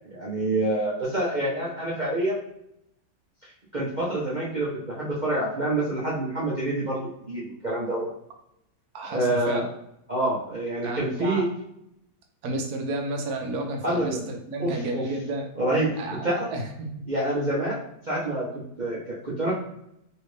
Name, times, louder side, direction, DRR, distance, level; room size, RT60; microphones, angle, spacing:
voice 1, 0.1-2.4 3.7-7.0 7.3-8.1 9.0-9.6 10.1-11.5 13.8-14.3 14.6-15.0 15.6-16.0 16.2-16.5 17.1-17.8 18.1-18.5 18.8-19.5, right 1 dB, 40° right, -8 dB, 0.7 m, -27 dB
voice 2, 8.9-9.6 10.8-11.5 12.4-15.5 16.0-17.0, right 2 dB, 70° right, 3 dB, 1.1 m, -32 dB
3.2 x 2.8 x 3.2 m, 0.79 s
omnidirectional pair, 1.8 m